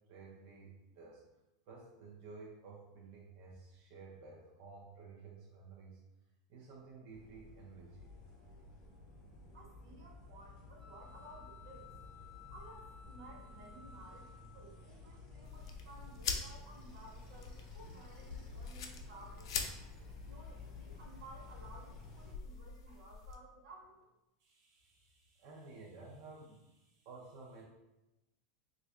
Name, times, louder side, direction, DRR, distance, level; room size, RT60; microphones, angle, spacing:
voice 1, 0.1-1.2 1.7-6.0 6.5-8.1 12.3-12.4 17.8-17.9 20.0-20.1 24.4-27.6, right 4 dB, 45° right, -3 dB, 0.4 m, -53 dB
sound 1, 7.1-22.3, left 3 dB, 30° left, 1.0 m, -54 dB
voice 2, 9.5-11.9 12.5-19.5 20.1-24.0, right 2 dB, 80° right, -2 dB, 1.1 m, -56 dB
sound 2, 10.8-14.8, left 6 dB, 15° left, 0.4 m, -58 dB
sound 3, 15.4-23.3, left 5 dB, 85° left, 0.4 m, -45 dB
3.4 x 2.5 x 3.1 m, 0.98 s
supercardioid pair, 180°, 3 cm